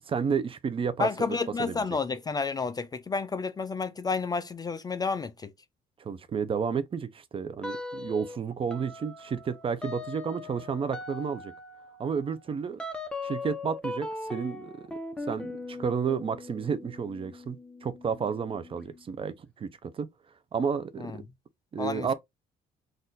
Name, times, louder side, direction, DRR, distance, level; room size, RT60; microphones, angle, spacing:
voice 1, 0.1-1.8 6.0-11.5 12.0-12.8 13.2-15.0 15.3-17.6 17.8-20.1 20.5-21.2 21.7-22.1, right 6 dB, 30° right, 0.5 m, -31 dB
voice 2, 1.0-5.5 21.0-21.2 21.8-22.1, left 4 dB, 25° left, 0.4 m, -30 dB
sound 1, 7.6-8.4 8.7-19.0, left 2 dB, 5° left, 0.9 m, -40 dB
4.1 x 2.5 x 3.8 m
cardioid pair, 110°, 17 cm